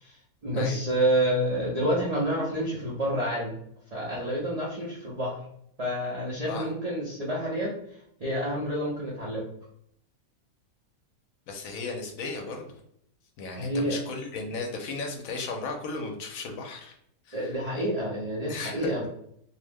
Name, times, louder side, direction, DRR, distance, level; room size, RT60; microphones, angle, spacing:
voice 1, 0.0-3.5 3.9-5.4 5.8-7.7 8.2-9.4 13.5-14.0 17.3-19.1, equal, 70° right, -5 dB, 0.3 m, -28 dB
voice 2, 11.5-12.7 13.4-16.9 17.3-17.6 18.5-18.9, left 3 dB, 70° left, 2 dB, 0.9 m, -35 dB
2.6 x 2.0 x 3.4 m, 0.71 s
omnidirectional pair, 1.6 m